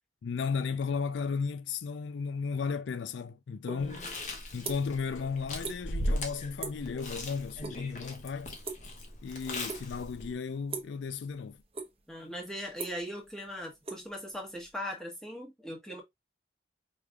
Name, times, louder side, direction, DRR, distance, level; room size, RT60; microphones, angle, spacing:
voice 1, 0.2-4.0 4.5-8.5 9.2-11.6, left 5 dB, 85° left, 0.4 m, -34 dB
voice 2, 3.7-4.2 12.1-16.0, equal, 5° left, 1.3 m, -40 dB
sound 1, 3.7-3.8 4.2-5.0 5.3-5.8 6.1-6.3 6.6-6.9 7.2-7.8 8.0-9.2 9.7-10.1 10.7-11.0 11.5-12.1 12.4-14.7, right 4 dB, 35° right, 0.9 m, -40 dB
Chewing mastication, 3.8-10.3, left 1 dB, 40° left, 1.0 m, -38 dB
4.9 x 3.2 x 2.3 m
head